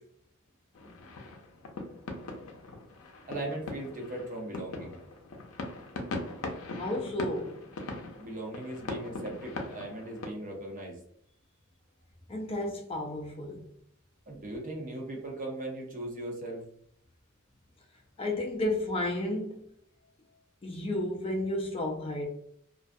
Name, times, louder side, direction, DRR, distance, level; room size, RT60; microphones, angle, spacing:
sound 1, 0.7-10.3, left 2 dB, 90° left, 0.5 m, -40 dB
voice 1, 3.3-5.0 8.2-11.0 14.3-16.6, right 1 dB, 40° right, 0.6 m, -38 dB
voice 2, 6.8-7.6 12.3-13.6 18.2-19.6 20.6-22.3, left 1 dB, 25° left, 0.4 m, -32 dB
2.3 x 2.2 x 2.5 m
head